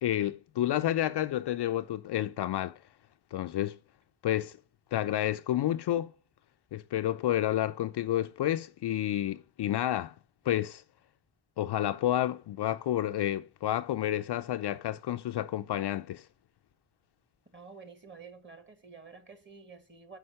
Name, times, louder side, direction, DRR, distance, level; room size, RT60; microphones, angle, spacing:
voice 1, 0.0-2.8 3.3-3.8 4.2-4.6 4.9-6.1 6.7-10.1 10.5-10.8 11.6-16.3, left 12 dB, 60° left, 0.5 m, -30 dB
voice 2, 17.5-20.2, right 5 dB, 25° right, 1.6 m, -50 dB
5.7 x 5.2 x 6.5 m
cardioid pair, 90°, 47 cm